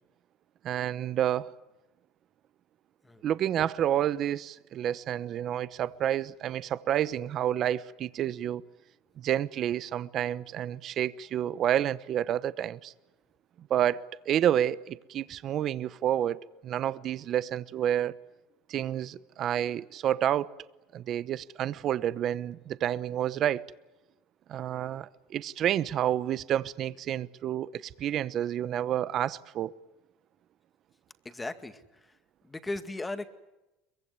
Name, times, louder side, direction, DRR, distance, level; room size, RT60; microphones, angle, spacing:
voice 1, 0.6-1.5 3.2-8.6 9.2-12.9 13.7-18.1 18.7-20.5 20.9-23.7 24.5-29.7, right 11 dB, 50° right, 0.9 m, -29 dB
voice 2, 31.2-32.2 32.4-33.3, left 2 dB, 15° left, 2.0 m, -37 dB
23.0 x 22.5 x 9.6 m
supercardioid pair, 110°, 0 cm